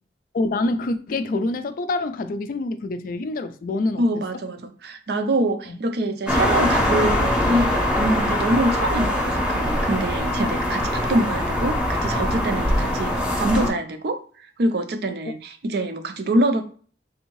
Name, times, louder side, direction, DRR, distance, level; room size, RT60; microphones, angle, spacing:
voice 1, 0.3-4.1 5.7-5.8 8.5-8.6, left 2 dB, 50° left, 0.3 m, -26 dB
voice 2, 4.0-14.2 14.6-16.6, right 1 dB, 65° right, 0.5 m, -25 dB
sound 1, 6.3-13.7, left 1 dB, 5° right, 0.7 m, -22 dB
3.4 x 2.7 x 3.0 m
head